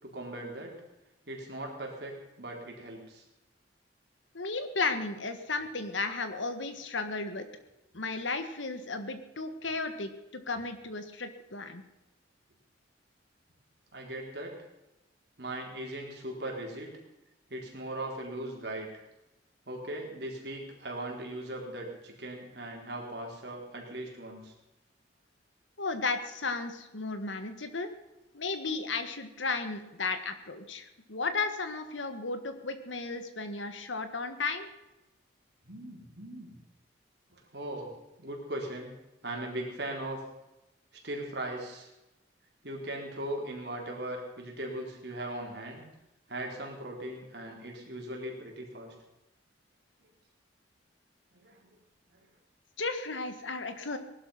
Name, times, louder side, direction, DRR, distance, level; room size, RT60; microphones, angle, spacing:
voice 1, 0.0-0.7 1.3-3.2 13.9-14.5 15.4-16.9 17.5-18.9 19.7-24.5 35.7-36.6 37.3-37.9 38.2-38.9 39.2-40.2 41.0-41.9 42.6-45.8 46.3-48.9 51.3-51.8 52.1-52.2, right 1 dB, 60° right, -1 dB, 4.0 m, -39 dB
voice 2, 4.3-7.5 7.9-11.8 25.8-27.9 28.3-34.7 52.8-54.0, left 3 dB, 85° left, 9 dB, 1.7 m, -34 dB
19.0 x 11.5 x 5.7 m, 0.97 s
head